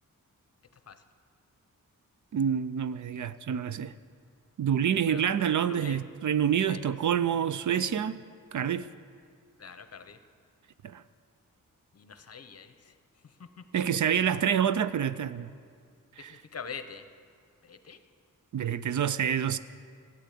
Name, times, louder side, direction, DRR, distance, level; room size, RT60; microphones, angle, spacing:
voice 1, 2.3-3.9 4.6-8.2 8.5-8.9 10.8-11.0 13.7-15.5 16.2-16.4 18.5-19.6, right 8 dB, 60° right, 0.5 m, -27 dB
voice 2, 5.7-6.0 6.7-6.8 9.6-10.2 11.9-12.7 16.5-17.0 17.7-18.0, left 6 dB, 50° left, 0.8 m, -43 dB
14.0 x 8.7 x 8.4 m
wide cardioid pair, 130°, 33 cm